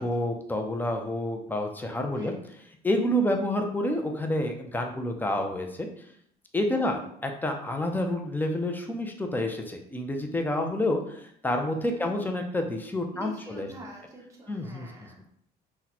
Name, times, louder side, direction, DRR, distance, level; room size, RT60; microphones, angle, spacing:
voice 1, 0.0-2.3 2.8-5.9 6.5-13.7 14.5-14.9, left 1 dB, 10° left, 3 dB, 0.5 m, -29 dB
voice 2, 6.7-7.1 11.9-12.3 13.1-15.2, right 1 dB, 20° right, -3 dB, 0.9 m, -45 dB
2.8 x 2.2 x 4.0 m, 0.68 s
cardioid pair, 110°, 17 cm